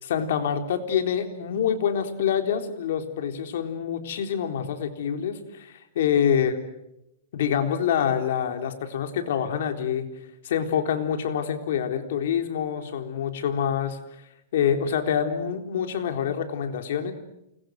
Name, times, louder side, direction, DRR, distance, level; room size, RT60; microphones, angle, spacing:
voice 1, 0.0-6.5 7.3-10.1 10.4-14.0 14.5-17.1, left 8 dB, 65° left, 6 dB, 3.8 m, -26 dB
29.0 x 22.0 x 8.0 m, 0.84 s
supercardioid pair, 160°, 0 cm